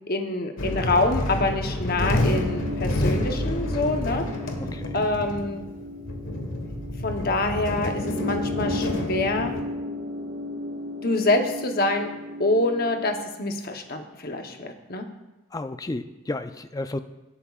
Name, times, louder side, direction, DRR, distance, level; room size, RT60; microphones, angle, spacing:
voice 1, 0.1-4.2 4.9-5.7 7.0-9.5 11.0-12.1 12.4-15.0, left 2 dB, 45° left, 4 dB, 1.0 m, -26 dB
sound 1, 0.6-9.6, left 1 dB, 75° left, 1.4 m, -29 dB
sound 2, 2.0-13.1, left 2 dB, 90° right, 3.9 m, -35 dB
voice 2, 4.6-5.1 15.5-17.0, left 2 dB, 15° left, 10 dB, 0.4 m, -32 dB
17.5 x 8.5 x 2.4 m, 1.0 s
head